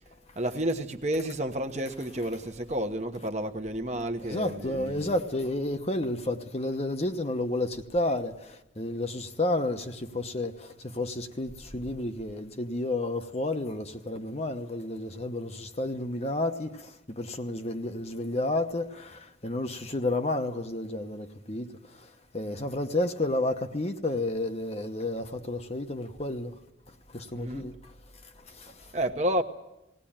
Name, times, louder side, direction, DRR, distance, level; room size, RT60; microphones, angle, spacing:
voice 1, 0.4-5.1 27.3-27.7 28.9-29.4, right 1 dB, 35° right, 1.1 m, -30 dB
voice 2, 4.2-26.6 26.9-27.9 28.2-28.9, left 2 dB, 35° left, 1.0 m, -31 dB
19.5 x 18.0 x 8.8 m
head